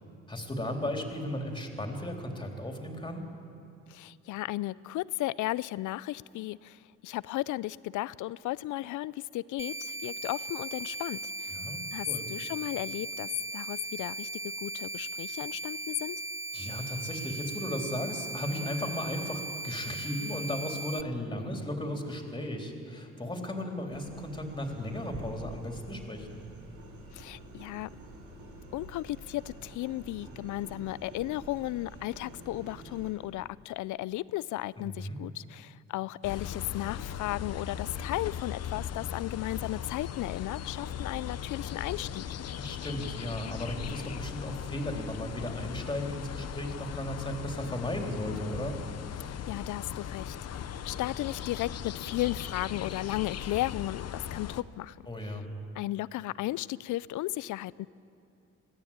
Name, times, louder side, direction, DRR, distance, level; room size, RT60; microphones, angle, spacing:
voice 1, 0.3-3.2 11.5-12.3 16.5-26.4 34.8-35.2 42.5-48.8 55.1-55.4, left 1 dB, 15° left, 3 dB, 3.4 m, -35 dB
voice 2, 3.9-11.6 11.9-14.3 14.6-16.2 27.1-27.9 28.7-42.3 49.2-55.0 55.2-55.3 55.7-57.9, left 16 dB, 80° left, 20 dB, 0.5 m, -35 dB
sound 1, 9.6-21.0, right 2 dB, 10° right, 0.4 m, -38 dB
sound 2, 23.9-33.1, right 1 dB, 75° right, 4.7 m, -48 dB
sound 3, 36.2-54.6, left 8 dB, 55° left, 0.9 m, -38 dB
22.0 x 15.5 x 8.8 m, 2.7 s
cardioid pair, 90°, 30 cm